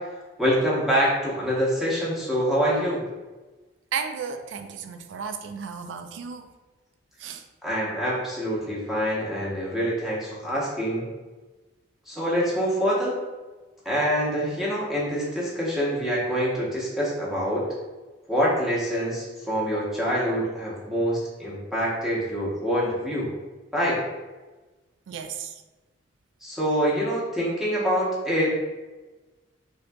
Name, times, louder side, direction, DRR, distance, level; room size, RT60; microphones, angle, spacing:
voice 1, 0.4-3.0 7.6-11.0 12.1-13.2 13.8-17.6 18.3-23.3 23.7-24.0 26.4-28.5, equal, ahead, -7 dB, 0.8 m, -25 dB
voice 2, 3.9-6.5 7.2-7.4 25.1-25.5, right 6 dB, 85° right, 8 dB, 0.3 m, -34 dB
3.6 x 2.6 x 2.2 m, 1.2 s
head